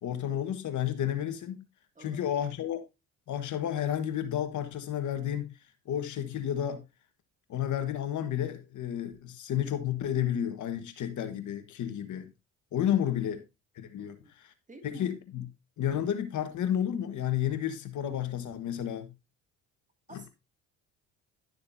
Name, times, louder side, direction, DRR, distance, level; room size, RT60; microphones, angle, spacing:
voice 1, 0.0-1.6 2.0-2.8 3.3-5.6 5.8-6.8 7.5-12.3 12.7-13.4 13.7-14.2 14.8-15.4 15.8-19.1, left 10 dB, 60° left, 1.4 m, -31 dB
voice 2, 2.0-2.4 13.0-13.3 14.0-14.3 14.7-15.1 20.1-20.3, right 2 dB, 20° right, 2.2 m, -50 dB
11.5 x 6.7 x 2.6 m
supercardioid pair, 80°, 34 cm